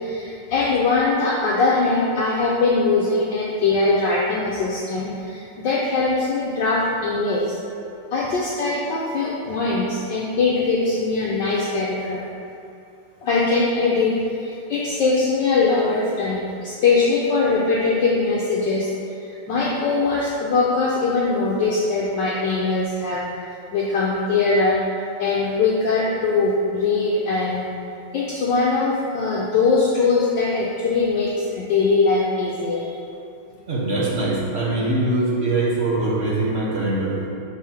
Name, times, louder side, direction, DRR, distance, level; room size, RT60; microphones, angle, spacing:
voice 1, 0.0-7.6 8.1-12.2 13.2-14.1 14.4-18.9 19.2-23.2 23.7-24.8 25.2-27.7 28.1-33.0, left 3 dB, 70° left, -5 dB, 1.2 m, -21 dB
voice 2, 33.7-37.2, right 2 dB, 60° right, -5 dB, 0.7 m, -22 dB
5.1 x 3.7 x 5.6 m, 2.5 s
omnidirectional pair, 2.3 m